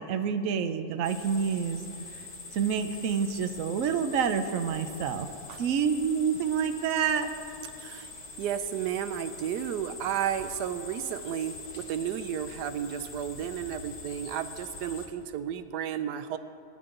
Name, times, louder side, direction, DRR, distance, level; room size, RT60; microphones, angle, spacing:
voice 1, 0.0-1.8 2.5-5.3 5.6-7.3, right 7 dB, 60° right, 8 dB, 1.1 m, -28 dB
sound 1, 1.0-15.1, left 3 dB, 55° left, 1.9 m, -44 dB
voice 2, 7.8-8.1 8.4-16.4, right 9 dB, 85° right, 10 dB, 1.2 m, -33 dB
22.0 x 10.5 x 3.8 m, 2.7 s
omnidirectional pair, 1.7 m